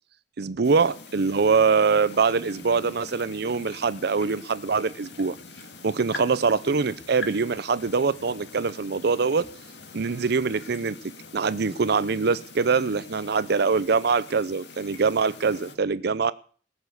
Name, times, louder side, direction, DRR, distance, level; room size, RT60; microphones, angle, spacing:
voice 1, 0.4-5.4 5.8-9.5 9.9-11.0 11.3-16.3, right 5 dB, 60° right, 16 dB, 0.6 m, -23 dB
sound 1, 0.6-15.8, left 3 dB, 65° left, 2.1 m, -44 dB
19.0 x 7.1 x 8.2 m, 0.43 s
head